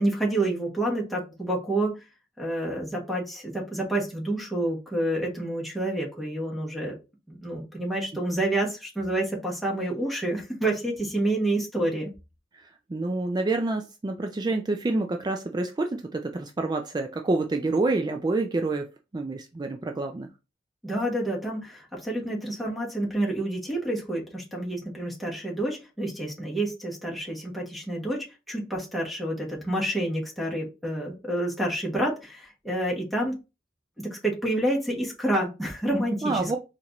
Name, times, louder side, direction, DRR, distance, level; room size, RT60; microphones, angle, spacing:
voice 1, 0.0-2.0 2.4-7.0 7.3-12.1 20.8-33.4 34.0-36.6, right 1 dB, ahead, -1 dB, 1.1 m, -28 dB
voice 2, 12.9-18.9 19.1-20.3 36.2-36.6, right 2 dB, 20° right, 4 dB, 0.3 m, -27 dB
4.3 x 2.5 x 2.9 m, 0.27 s
head